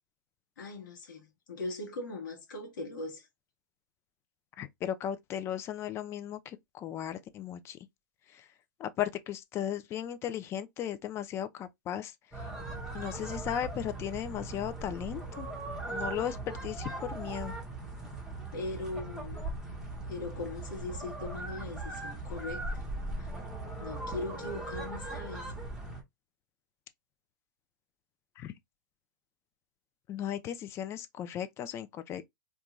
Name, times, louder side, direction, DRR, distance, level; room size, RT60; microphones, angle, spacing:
voice 1, 0.6-3.3 18.5-19.4 20.1-22.6 23.2-23.3 23.8-25.4, left 2 dB, 70° left, 1.0 m, -40 dB
voice 2, 4.6-7.8 8.3-8.5 8.8-12.1 12.9-15.5 15.9-17.5 28.4-28.5 30.1-32.2, left 10 dB, 25° left, 0.3 m, -36 dB
sound 1, 12.3-26.0, right 2 dB, 5° right, 0.8 m, -39 dB
2.4 x 2.2 x 2.9 m
hypercardioid pair, 125°, 11 cm